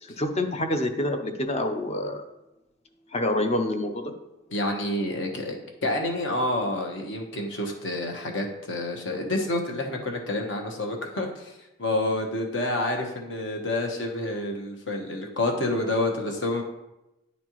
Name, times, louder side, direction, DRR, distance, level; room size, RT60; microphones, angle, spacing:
voice 1, 0.0-2.2 3.1-4.1, left 1 dB, 35° left, 6 dB, 0.6 m, -27 dB
voice 2, 4.5-16.6, left 1 dB, 65° left, 2 dB, 1.1 m, -28 dB
9.5 x 4.2 x 3.0 m, 0.94 s
head